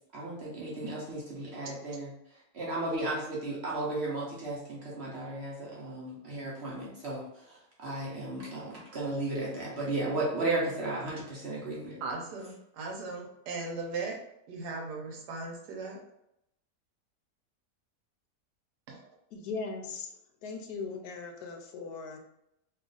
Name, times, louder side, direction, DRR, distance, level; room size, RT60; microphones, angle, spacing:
voice 1, 0.1-2.1 2.5-7.2 7.5-12.0, right 2 dB, 50° right, -5 dB, 0.8 m, -34 dB
voice 2, 12.0-14.2 14.5-16.0 18.9-19.1, right 3 dB, 85° right, 1 dB, 1.3 m, -38 dB
voice 3, 19.3-20.1 20.4-22.2, left 4 dB, 80° left, 4 dB, 1.1 m, -39 dB
3.0 x 2.4 x 3.8 m, 0.80 s
omnidirectional pair, 1.7 m